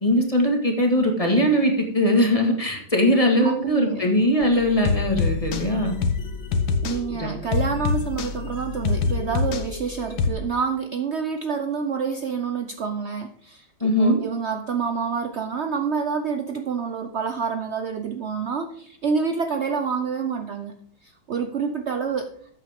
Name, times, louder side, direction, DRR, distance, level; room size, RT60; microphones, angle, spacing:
voice 1, 0.0-5.9 7.1-7.3 13.8-14.2, equal, 20° left, 2 dB, 1.6 m, -20 dB
voice 2, 3.4-4.1 6.8-13.7 14.0-20.7 21.0-22.3, right 6 dB, 75° right, 6 dB, 0.6 m, -27 dB
sound 1, 4.4-10.3, left 4 dB, 80° left, 1.9 m, -26 dB
13.0 x 8.5 x 3.6 m, 0.62 s
omnidirectional pair, 2.1 m